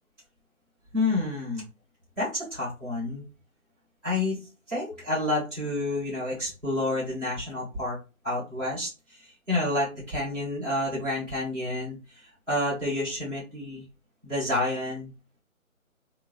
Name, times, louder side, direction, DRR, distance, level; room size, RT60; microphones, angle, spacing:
voice 1, 0.9-1.7 2.2-3.2 4.0-8.0 8.2-13.8 14.2-15.1, left 2 dB, ahead, -13 dB, 0.9 m, -29 dB
3.5 x 2.8 x 3.2 m, 0.31 s
figure-of-eight pair, 160°, 42 cm